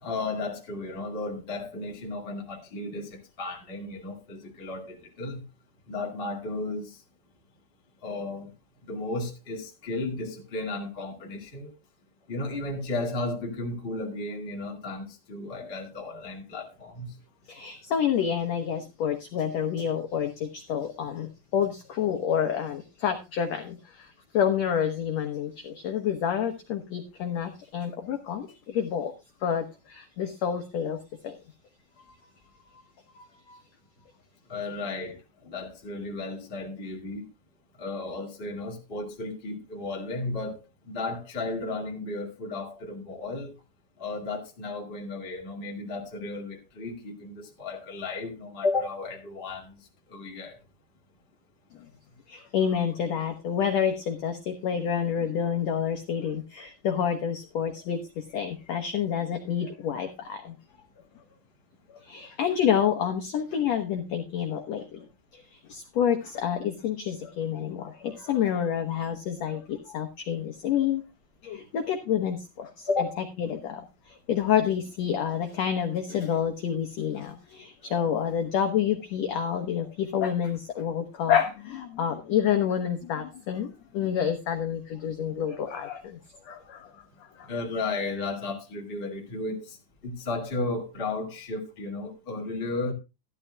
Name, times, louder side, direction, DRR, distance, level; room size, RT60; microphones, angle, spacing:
voice 1, 0.0-5.4 5.9-7.0 8.0-8.5 8.8-11.7 12.3-17.1 34.5-37.3 37.8-43.6 44.0-50.6 72.9-73.2 87.4-89.8 90.0-92.9, left 3 dB, 20° left, 1.8 m, -34 dB
voice 2, 17.5-29.1 29.4-31.0 31.2-31.4 32.0-32.1 32.7-32.8 33.2-33.6 51.7-51.9 52.3-60.6 61.9-65.0 65.3-71.0 71.4-73.1 73.4-87.5, left 8 dB, 65° left, 1.9 m, -28 dB
14.0 x 12.0 x 2.2 m
omnidirectional pair, 4.2 m